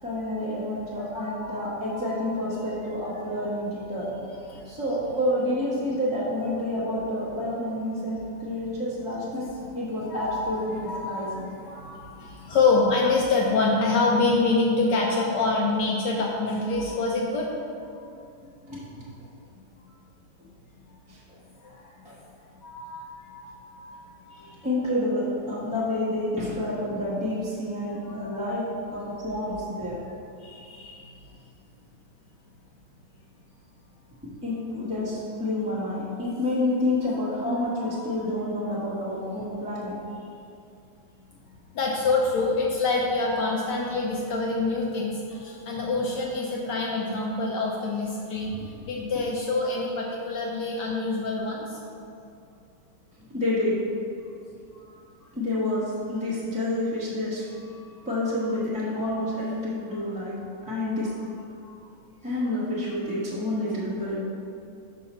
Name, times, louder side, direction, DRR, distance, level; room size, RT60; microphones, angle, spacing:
voice 1, 0.0-4.1 4.6-9.5 9.7-11.3 18.6-19.0 21.1-21.2 22.0-22.2 24.3-30.0 34.4-40.0 53.2-53.8 55.3-57.4 58.0-60.3 60.7-61.1 62.2-64.1, left 1 dB, 5° right, -9 dB, 0.6 m, -29 dB
voice 2, 1.2-1.6 1.9-2.2 4.5-4.7 10.1-10.4 10.7-17.5 17.8-17.9 22.6-24.3 28.0-28.3 28.9-29.2 30.4-31.0 37.8-38.1 41.7-48.5 48.9-51.8 57.7-57.8 59.9-60.0 61.6-61.7, left 3 dB, 75° left, -2 dB, 1.0 m, -26 dB
5.6 x 3.7 x 5.4 m, 2.5 s
omnidirectional pair, 2.4 m